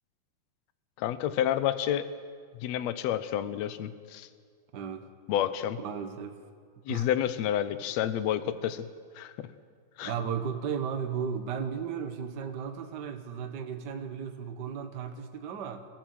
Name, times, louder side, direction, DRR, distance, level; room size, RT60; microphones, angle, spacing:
voice 1, 1.0-2.1 2.6-4.3 5.3-5.8 6.9-8.8 9.1-9.5 10.0-10.1, left 11 dB, 70° left, 12 dB, 1.6 m, -29 dB
voice 2, 4.7-5.1 5.8-6.4 6.9-7.1 10.0-15.9, right 7 dB, 75° right, 6 dB, 0.9 m, -35 dB
28.5 x 15.0 x 7.9 m, 2.1 s
omnidirectional pair, 4.2 m